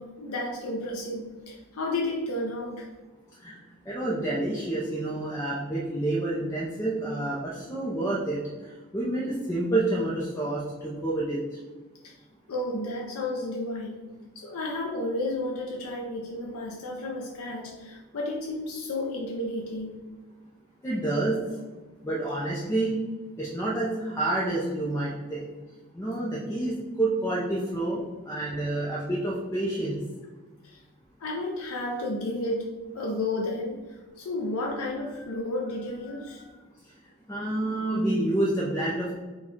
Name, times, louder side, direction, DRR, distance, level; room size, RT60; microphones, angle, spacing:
voice 1, 0.0-2.9 12.0-12.2 12.5-14.0 14.3-20.0 27.9-28.0 30.6-30.8 31.2-32.7 32.9-36.6, left 2 dB, 75° left, -1 dB, 0.5 m, -32 dB
voice 2, 3.4-11.6 20.8-21.4 22.0-23.0 23.4-25.5 25.9-30.0 37.3-39.1, right 2 dB, 10° left, -5 dB, 0.5 m, -28 dB
4.5 x 2.3 x 4.4 m, 1.3 s
head